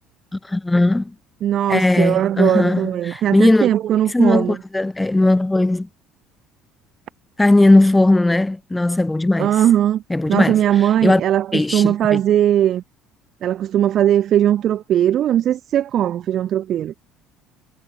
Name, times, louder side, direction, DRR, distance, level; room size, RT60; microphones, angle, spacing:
voice 1, 0.3-1.1 1.7-3.7 4.1-5.9 7.4-9.5 10.1-11.2 11.5-12.2, left 2 dB, 10° left, 0.8 m, -17 dB
voice 2, 1.4-4.6 9.4-10.0 10.3-12.8 13.4-16.9, right 11 dB, 50° right, 0.7 m, -19 dB
cardioid pair, 130°, 0 cm